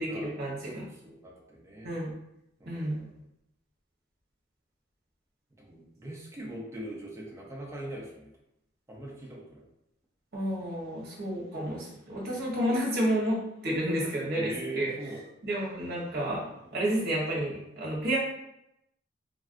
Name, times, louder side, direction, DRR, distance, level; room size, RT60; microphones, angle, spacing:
voice 1, 0.0-0.9 1.8-2.1 2.7-3.0 10.3-14.9 15.4-16.4 16.7-18.2, right 1 dB, 55° right, -4 dB, 1.0 m, -30 dB
voice 2, 1.0-2.0 2.6-3.1 5.6-8.3 8.9-9.6 12.2-12.6 14.2-15.2 16.6-16.8, right 1 dB, 15° right, -4 dB, 0.6 m, -41 dB
3.3 x 2.4 x 2.5 m, 0.83 s
head